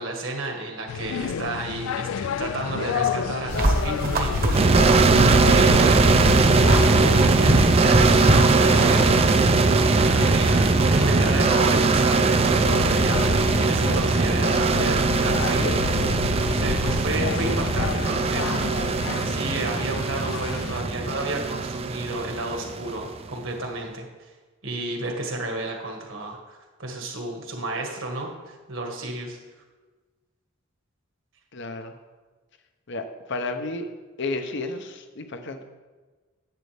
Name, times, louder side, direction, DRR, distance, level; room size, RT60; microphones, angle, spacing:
voice 1, 0.0-4.9 5.2-9.2 10.1-15.8 16.5-18.9 19.3-24.3 24.6-29.4, right 2 dB, 70° right, 2 dB, 1.7 m, -31 dB
sound 1, 0.9-20.8, left 7 dB, 90° left, 0.3 m, -31 dB
sound 2, 3.5-9.0, right 1 dB, 45° right, 1.1 m, -23 dB
sound 3, 4.5-23.2, right 3 dB, 30° right, 0.4 m, -20 dB
voice 2, 31.5-31.9 32.9-33.9 34.2-35.6, left 3 dB, 60° left, 7 dB, 0.8 m, -32 dB
10.5 x 8.2 x 3.5 m, 1.3 s
head